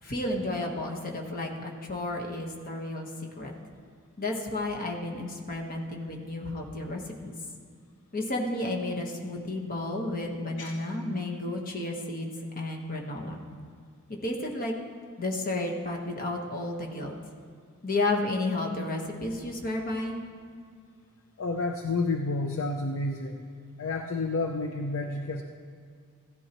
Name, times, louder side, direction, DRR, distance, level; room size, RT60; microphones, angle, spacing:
voice 1, 0.0-3.1 3.4-3.5 4.2-7.3 8.1-13.4 14.2-14.7 15.2-17.2 17.8-20.2, left 2 dB, 40° left, 1 dB, 1.3 m, -32 dB
voice 2, 21.4-23.4 23.8-25.4, left 3 dB, 60° left, 3 dB, 0.6 m, -30 dB
15.5 x 11.0 x 3.0 m, 2.1 s
head